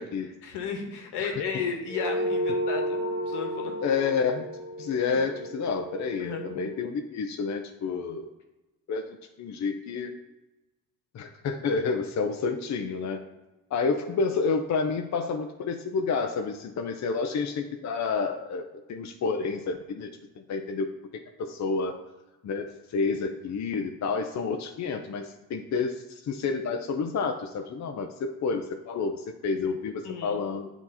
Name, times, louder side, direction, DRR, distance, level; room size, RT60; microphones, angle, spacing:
voice 1, 0.4-3.8 6.2-6.4 30.0-30.4, left 5 dB, 70° left, 3 dB, 1.3 m, -33 dB
sound 1, 1.9-6.7, equal, 15° right, 1.7 m, -32 dB
voice 2, 3.8-4.5 4.8-8.3 8.9-10.1 11.1-13.2 13.7-20.1 20.4-20.9 21.4-22.0 22.4-30.7, left 5 dB, 45° left, 5 dB, 0.6 m, -29 dB
8.6 x 3.0 x 4.1 m, 1.1 s
hypercardioid pair, 60°, 41 cm